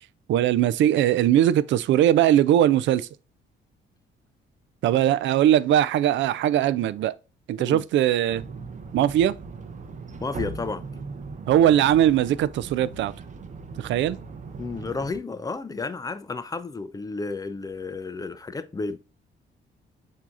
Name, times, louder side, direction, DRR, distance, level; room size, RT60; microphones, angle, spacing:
voice 1, 0.3-3.1 4.8-7.1 7.5-8.4 8.9-9.3 11.5-13.1 13.8-14.2, right 11 dB, 70° right, 0.4 m, -20 dB
sound 1, 8.3-15.2, right 4 dB, 40° right, 0.7 m, -39 dB
voice 2, 10.2-10.8 14.6-19.0, left 3 dB, 20° left, 0.5 m, -32 dB
7.3 x 2.8 x 2.4 m
cardioid pair, 90°, 20 cm